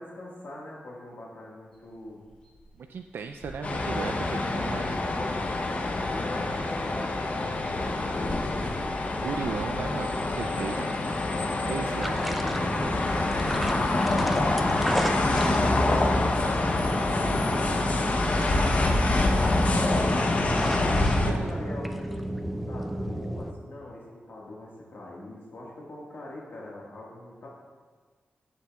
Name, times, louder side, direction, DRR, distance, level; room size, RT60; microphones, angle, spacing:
voice 1, 0.0-2.2 3.4-3.5 4.0-7.1 7.6-8.9 10.5-16.8 17.5-20.3 21.0-27.5, left 1 dB, 65° left, -4 dB, 1.6 m, -42 dB
sound 1, 1.7-9.7, equal, 25° left, 2.8 m, -47 dB
voice 2, 2.8-5.0 9.2-10.9 11.7-12.2 17.2-17.5 21.2-21.5, right 6 dB, 80° right, 5 dB, 0.3 m, -36 dB
sound 2, 3.6-21.3, left 2 dB, 40° left, 0.7 m, -26 dB
sound 3, 12.0-23.5, equal, ahead, 0.4 m, -33 dB
15.5 x 7.1 x 2.3 m, 1.5 s
wide cardioid pair, 175°, 4 cm